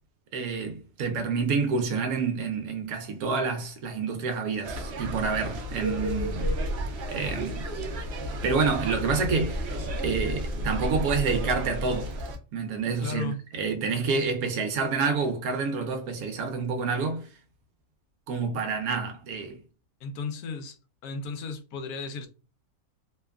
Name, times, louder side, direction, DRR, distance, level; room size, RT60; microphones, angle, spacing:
voice 1, 0.3-6.5 7.1-7.6 8.3-12.2 12.5-17.3 18.3-19.6, right 4 dB, 75° right, 1.1 m, -28 dB
sound 1, 4.6-12.4, equal, 60° right, 0.7 m, -32 dB
voice 2, 13.0-13.4 20.0-22.3, left 4 dB, 90° left, 1.1 m, -35 dB
2.9 x 2.2 x 2.3 m
omnidirectional pair, 1.6 m